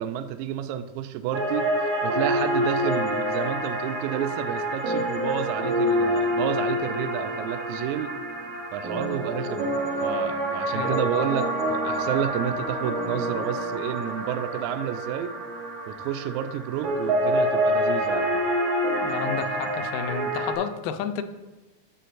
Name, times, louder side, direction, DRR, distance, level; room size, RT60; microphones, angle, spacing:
voice 1, 0.0-8.1 8.7-9.7 10.0-15.3 15.9-18.4, right 10 dB, 85° right, 10 dB, 1.7 m, -30 dB
sound 1, 1.3-20.5, equal, 65° right, 2.4 m, -27 dB
voice 2, 10.7-11.1 19.0-21.2, left 7 dB, 85° left, 8 dB, 2.2 m, -31 dB
11.0 x 7.4 x 2.5 m, 1.1 s
omnidirectional pair, 3.9 m